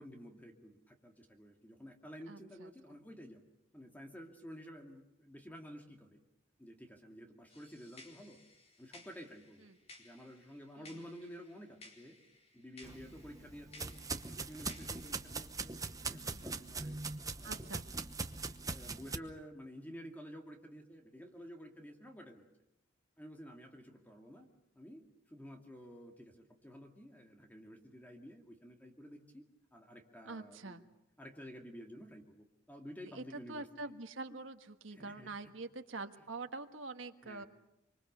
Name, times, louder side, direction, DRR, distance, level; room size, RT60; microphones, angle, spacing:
voice 1, 0.0-3.4 3.7-6.2 6.6-8.4 8.8-9.7 10.0-12.2 12.5-13.9 14.2-17.7 18.7-22.4 23.2-24.5 24.7-29.4 29.7-30.8 31.2-33.7 34.3-34.4 34.9-35.3 37.2-37.5, equal, 10° left, 2 dB, 2.4 m, -51 dB
voice 2, 2.3-2.7 9.6-9.8 10.8-11.0 16.2-16.4 17.4-17.8 30.2-30.8 33.1-33.2 33.5-37.4, right 3 dB, 75° right, 6 dB, 1.5 m, -45 dB
sound 1, 7.5-15.2, left 2 dB, 30° left, 4.1 m, -59 dB
sound 2, 12.8-19.2, right 4 dB, 20° right, 1.0 m, -41 dB
25.5 x 25.5 x 6.8 m, 0.90 s
head